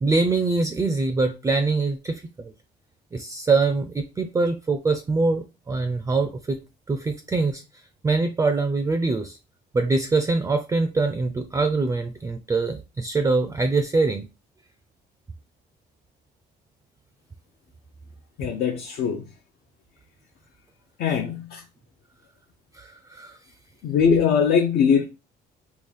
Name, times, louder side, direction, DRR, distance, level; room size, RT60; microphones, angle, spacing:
voice 1, 0.0-2.5 3.1-6.6 6.9-7.6 8.0-9.4 9.7-14.3 22.7-23.4, right 3 dB, 15° right, 0.4 m, -24 dB
voice 2, 18.4-19.2 21.0-21.6 23.8-25.0, left 6 dB, 70° left, 0.6 m, -21 dB
3.7 x 2.4 x 3.2 m
cardioid pair, 110°, 17 cm